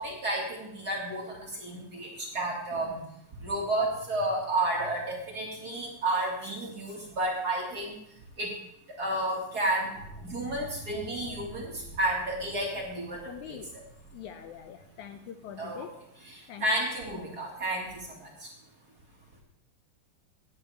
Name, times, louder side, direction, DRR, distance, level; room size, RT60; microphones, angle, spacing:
voice 1, 0.0-3.0 3.4-7.9 8.4-8.5 9.0-9.9 10.2-13.2 13.5-13.6 15.6-15.9 16.6-17.9, right 1 dB, 35° right, -2 dB, 2.2 m, -31 dB
sound 1, 10.0-15.6, right 1 dB, 20° left, 4.0 m, -48 dB
voice 2, 13.3-13.7 14.1-15.9 16.5-16.7, left 9 dB, 80° left, 7 dB, 1.9 m, -44 dB
17.5 x 9.4 x 3.4 m, 0.75 s
omnidirectional pair, 3.8 m